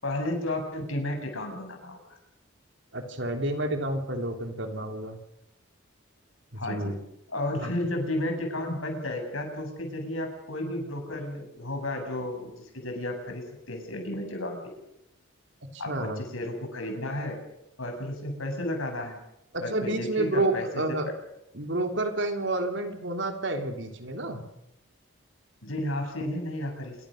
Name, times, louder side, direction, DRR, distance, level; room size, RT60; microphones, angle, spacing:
voice 1, 0.0-2.2 6.6-7.0 7.3-14.6 15.8-17.4 17.8-19.2 19.6-21.1 25.6-27.0, left 1 dB, 85° left, 3 dB, 7.9 m, -33 dB
voice 2, 2.9-5.2 6.7-7.0 7.5-7.7 15.8-16.2 19.5-21.1 21.5-24.4, right 2 dB, 60° right, 5 dB, 3.3 m, -29 dB
27.5 x 24.0 x 6.6 m, 0.83 s
head